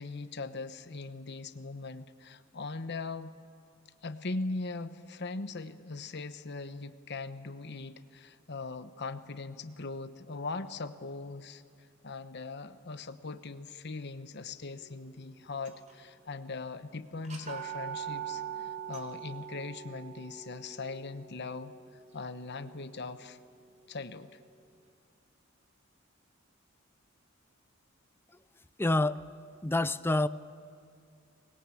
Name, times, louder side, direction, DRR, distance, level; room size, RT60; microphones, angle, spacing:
voice 1, 0.0-3.4 4.0-11.6 12.0-23.4 23.9-24.4, left 3 dB, 55° left, 10 dB, 1.1 m, -40 dB
sound 1, 15.6-16.2 16.5-16.6 17.2-23.1, right 9 dB, 35° right, 3.4 m, -42 dB
voice 2, 28.8-29.2 29.6-30.3, left 2 dB, 10° left, 14 dB, 0.5 m, -27 dB
24.5 x 21.0 x 8.5 m, 2.4 s
head